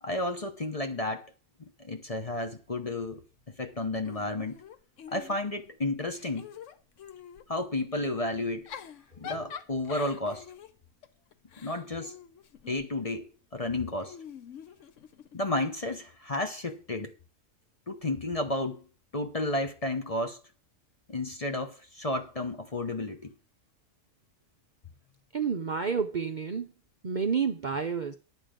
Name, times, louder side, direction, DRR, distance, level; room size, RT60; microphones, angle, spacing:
voice 1, 0.0-1.3 1.8-3.2 3.6-4.6 5.1-6.5 7.5-8.7 9.2-10.5 11.6-12.1 12.7-14.2 15.3-17.1 17.9-18.8 19.1-20.4 21.1-23.3, left 2 dB, 30° left, 0.9 m, -32 dB
Giggle / Chuckle chortle, 4.0-5.7 6.1-7.5 8.4-12.9 14.0-15.4, left 8 dB, 70° left, 1.1 m, -46 dB
voice 2, 25.3-26.7 27.0-28.1, right 6 dB, 45° right, 0.6 m, -30 dB
11.0 x 8.0 x 5.1 m
omnidirectional pair, 1.4 m